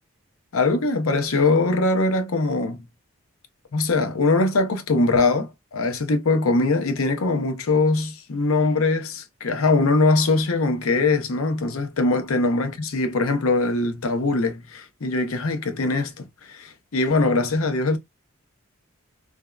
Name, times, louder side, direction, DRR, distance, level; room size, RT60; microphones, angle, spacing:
voice 1, 0.5-2.9 3.7-18.0, left 3 dB, 80° left, 0.6 m, -22 dB
3.4 x 2.0 x 2.2 m
head